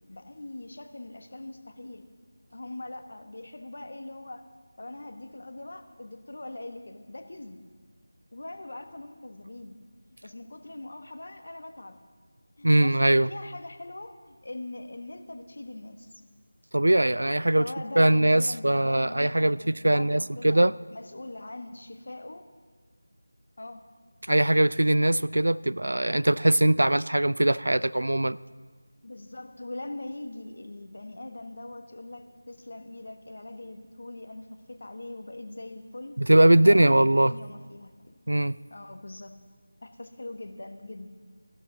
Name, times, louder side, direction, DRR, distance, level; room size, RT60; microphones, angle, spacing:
voice 1, 0.1-2.1 2.5-4.4 4.8-7.6 8.3-9.8 10.2-12.0 12.6-13.0 13.2-16.2 17.6-20.6 20.9-22.4 23.6-23.8 25.9-26.0 29.0-36.1 36.6-38.1 38.7-39.3 39.8-41.1, left 2 dB, 50° left, 7 dB, 1.2 m, -41 dB
voice 2, 12.6-13.3 16.7-17.7 18.0-20.7 24.3-28.4 36.2-37.3 38.3-38.5, right 1 dB, 70° right, 18 dB, 0.3 m, -21 dB
15.0 x 11.5 x 4.0 m, 1.5 s
figure-of-eight pair, 165°, 0 cm